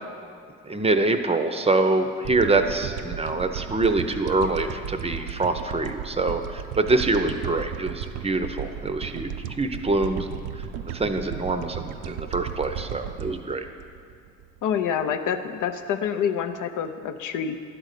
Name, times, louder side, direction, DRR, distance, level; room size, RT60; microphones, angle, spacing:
voice 1, 0.6-10.7 10.9-13.7, right 2 dB, 20° right, 7 dB, 0.5 m, -25 dB
sound 1, 2.2-14.7, right 9 dB, 85° right, 0.5 m, -35 dB
voice 2, 14.6-17.6, left 8 dB, 80° left, 8 dB, 0.6 m, -27 dB
11.0 x 3.9 x 6.5 m, 2.2 s
cardioid pair, 90°, 30 cm